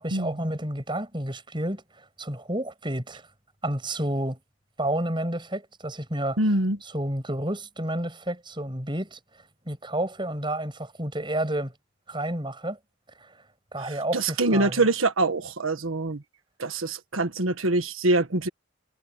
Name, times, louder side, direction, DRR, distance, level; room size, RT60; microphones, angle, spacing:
voice 1, 0.0-3.3 3.6-4.4 4.8-6.4 6.8-9.2 9.7-11.7 12.1-12.8 13.2-13.4 13.7-14.8, right 1 dB, 25° right, 7.6 m, -30 dB
voice 2, 6.4-6.8 13.8-16.2 16.6-18.5, right 2 dB, 85° right, 1.5 m, -24 dB
head